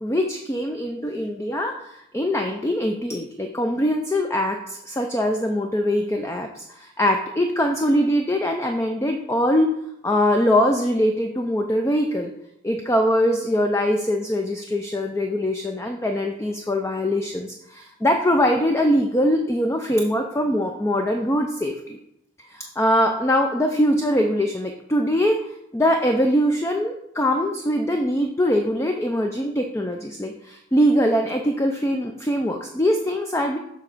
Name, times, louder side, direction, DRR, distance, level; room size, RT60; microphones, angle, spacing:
voice 1, 0.0-9.7 10.0-12.3 12.6-22.0 22.5-25.4 25.7-33.6, equal, 15° left, 4 dB, 0.4 m, -22 dB
6.9 x 3.5 x 6.0 m, 0.80 s
head